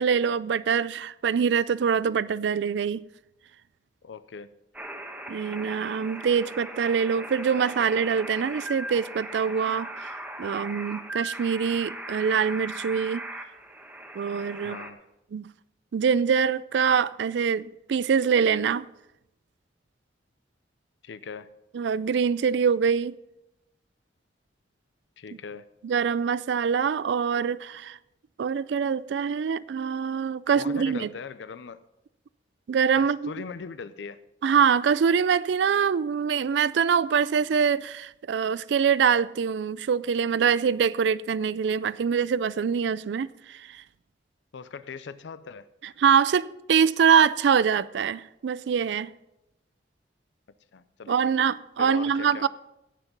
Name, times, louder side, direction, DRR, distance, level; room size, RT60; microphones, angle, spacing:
voice 1, 0.0-3.0 5.3-10.1 10.4-13.2 14.1-14.8 15.3-15.4 15.9-18.9 21.7-23.2 25.8-28.0 28.4-31.1 32.7-33.3 34.4-43.8 46.0-49.1 51.1-52.5, right 7 dB, 75° right, 0.4 m, -24 dB
voice 2, 4.0-4.5 14.6-15.0 21.0-21.5 25.2-25.7 30.5-31.8 33.0-34.2 44.5-45.7 50.7-51.5 51.8-52.5, left 5 dB, 80° left, 0.5 m, -40 dB
sound 1, 4.7-14.9, right 1 dB, 10° right, 1.1 m, -39 dB
16.5 x 6.0 x 5.3 m
head